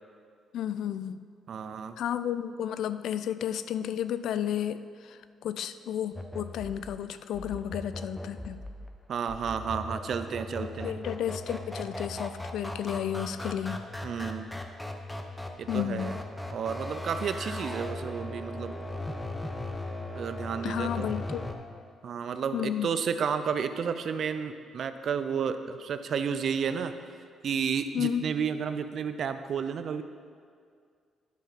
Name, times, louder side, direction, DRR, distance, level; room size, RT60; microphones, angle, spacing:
voice 1, 0.5-1.3 2.0-8.6 10.6-13.8 15.7-16.2 20.6-21.5 22.5-22.9 27.9-28.3, left 9 dB, 75° left, 12 dB, 0.3 m, -32 dB
voice 2, 1.5-2.0 9.1-11.0 14.0-14.5 15.6-16.2 16.5-18.7 20.1-21.1 22.0-26.9 27.4-30.0, right 7 dB, 60° right, 10 dB, 0.5 m, -31 dB
sound 1, 6.1-21.5, left 1 dB, 10° left, 0.8 m, -38 dB
10.5 x 6.4 x 4.1 m, 2.2 s
cardioid pair, 90°, 0 cm